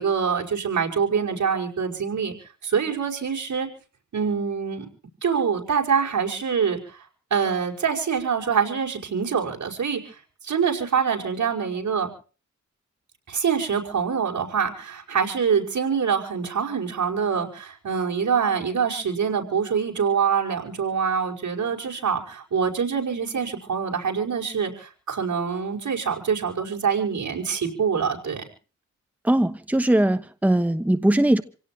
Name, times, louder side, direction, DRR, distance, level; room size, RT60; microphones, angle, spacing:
voice 1, 0.0-2.3 2.6-3.7 4.1-4.9 5.2-7.0 7.3-10.2 10.4-12.1 13.3-28.4, right 6 dB, 80° right, 5.3 m, -25 dB
voice 2, 29.2-31.4, right 1 dB, 5° right, 1.1 m, -20 dB
27.5 x 17.5 x 2.9 m
wide cardioid pair, 145°, 29 cm